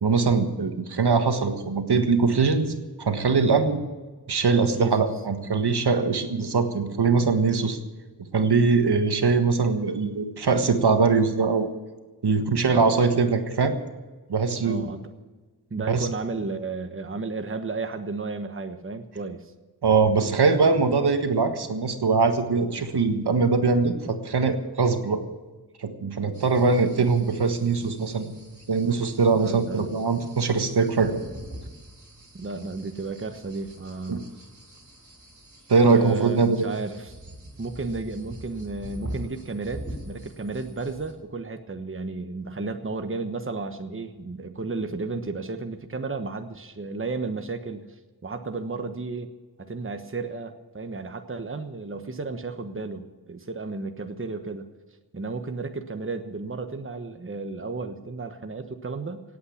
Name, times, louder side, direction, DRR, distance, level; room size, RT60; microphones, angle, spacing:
voice 1, 0.0-3.8 4.3-7.8 8.3-11.7 12.2-13.7 14.3-14.8 15.9-16.1 19.8-25.2 25.8-28.3 28.7-31.2 34.1-34.2 35.7-36.6, right 4 dB, 85° right, 7 dB, 1.5 m, -22 dB
voice 2, 4.8-5.1 14.6-15.0 15.7-19.5 29.4-29.9 32.3-34.3 35.8-37.1 37.6-47.8 48.2-49.3 49.6-54.7 55.1-59.2, right 3 dB, 35° right, 7 dB, 1.2 m, -33 dB
sound 1, 26.3-41.1, right 1 dB, 50° right, 4.6 m, -44 dB
17.5 x 8.7 x 8.6 m, 1.3 s
wide cardioid pair, 55°, 38 cm